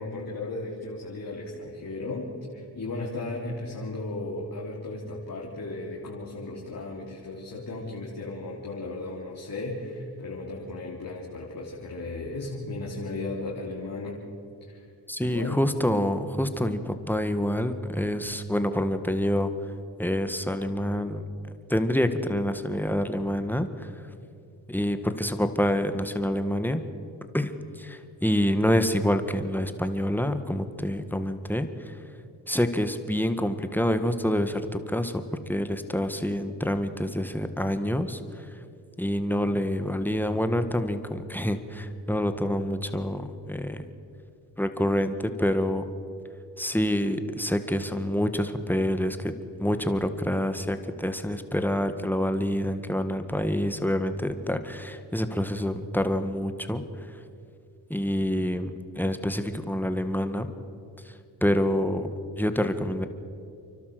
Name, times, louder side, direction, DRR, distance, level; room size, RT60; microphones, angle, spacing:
voice 1, 0.0-14.2 14.7-14.8 15.2-15.6, left 2 dB, 50° left, -4 dB, 3.6 m, -35 dB
voice 2, 15.1-19.5 20.0-21.2 21.7-24.0 24.7-26.8 27.3-32.0 32.5-35.2 35.5-38.6 39.0-43.8 44.6-45.9 46.6-49.3 49.6-56.8 57.9-60.5 61.0-61.1 61.4-62.1 62.4-63.1, equal, 5° left, 9 dB, 1.7 m, -27 dB
29.5 x 12.0 x 7.9 m, 2.5 s
cardioid pair, 65°, 43 cm